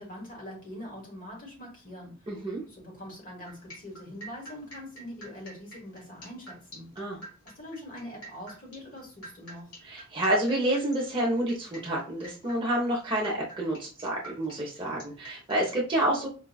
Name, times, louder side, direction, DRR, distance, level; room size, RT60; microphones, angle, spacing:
voice 1, 0.0-2.3 2.7-6.9 7.4-9.7, left 1 dB, 40° left, -2 dB, 1.4 m, -43 dB
voice 2, 2.3-2.6 7.0-7.2 9.8-16.3, right 1 dB, 20° right, -3 dB, 0.6 m, -28 dB
sound 1, 3.4-15.6, right 1 dB, 80° left, 1.3 m, -47 dB
4.6 x 2.3 x 2.2 m, 0.36 s
head